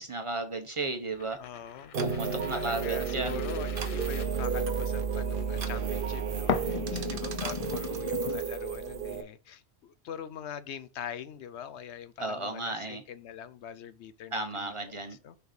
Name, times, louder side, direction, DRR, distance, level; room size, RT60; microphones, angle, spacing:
voice 1, 0.0-1.4 2.0-3.3 12.2-13.0 14.3-15.2, right 2 dB, 30° right, 1.0 m, -34 dB
sound 1, 1.2-5.0 6.5-8.4, left 8 dB, 60° left, 0.3 m, -37 dB
voice 2, 1.4-1.9 2.5-15.4, left 9 dB, 80° left, 0.9 m, -43 dB
sound 2, 1.9-9.2, right 6 dB, 55° right, 1.0 m, -32 dB
6.5 x 4.6 x 5.1 m
omnidirectional pair, 1.2 m